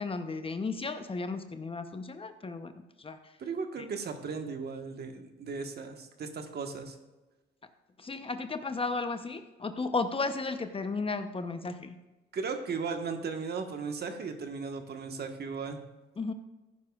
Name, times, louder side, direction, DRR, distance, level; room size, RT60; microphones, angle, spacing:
voice 1, 0.0-2.7 3.0-3.2 8.0-12.0 16.2-16.3, left 3 dB, 25° left, 9 dB, 0.8 m, -34 dB
voice 2, 3.4-7.0 12.3-15.8, right 5 dB, 55° right, 5 dB, 1.4 m, -36 dB
15.0 x 9.8 x 2.4 m, 1.1 s
cardioid pair, 90°, 20 cm